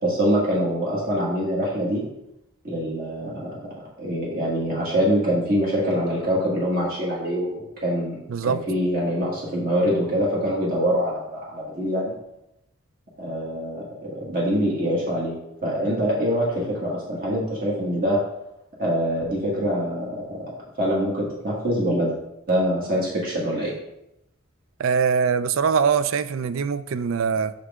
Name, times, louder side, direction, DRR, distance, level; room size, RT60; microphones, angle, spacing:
voice 1, 0.0-2.1 2.6-3.7 4.0-8.2 8.4-12.1 13.2-15.3 15.6-18.2 18.8-22.1 22.5-23.7, equal, 45° right, -5 dB, 1.9 m, -24 dB
voice 2, 24.8-27.5, right 6 dB, 70° right, 13 dB, 0.4 m, -22 dB
6.6 x 6.4 x 3.7 m, 0.85 s
head